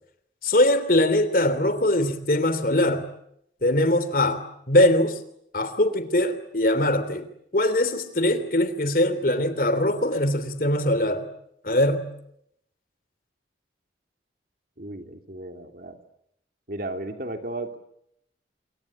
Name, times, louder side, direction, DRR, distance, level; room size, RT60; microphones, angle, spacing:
voice 1, 0.4-3.1 3.6-5.2 5.5-11.3 11.6-12.1, left 1 dB, 50° left, 3.1 m, -22 dB
voice 2, 14.8-16.0 16.7-17.8, right 2 dB, 50° right, 3.1 m, -34 dB
27.0 x 24.0 x 8.7 m
head